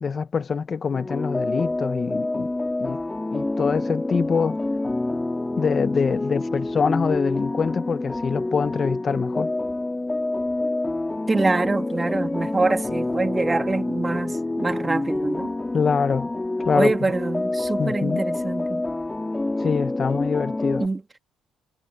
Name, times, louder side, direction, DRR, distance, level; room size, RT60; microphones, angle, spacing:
voice 1, 0.0-2.5 2.8-3.0 3.3-4.6 5.6-9.5 15.7-16.3 16.7-16.9 17.8-18.2 19.6-20.8, left 5 dB, 35° left, 1.2 m, -24 dB
sound 1, 0.9-20.9, left 2 dB, 15° left, 4.1 m, -27 dB
voice 2, 11.3-15.5 16.7-18.8 20.8-21.0, right 3 dB, 20° right, 2.3 m, -25 dB
cardioid pair, 100°, 0 cm